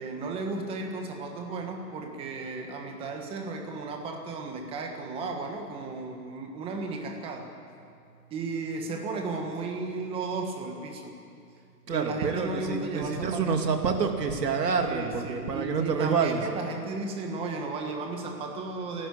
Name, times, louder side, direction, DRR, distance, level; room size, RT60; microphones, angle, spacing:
voice 1, 0.0-7.5 8.3-11.1 11.9-13.7 14.8-19.1, right 3 dB, 10° right, 3 dB, 1.5 m, -34 dB
voice 2, 11.9-16.4, right 5 dB, 80° right, 4 dB, 2.8 m, -27 dB
29.0 x 12.0 x 8.4 m, 2.5 s
hypercardioid pair, 160°, 49 cm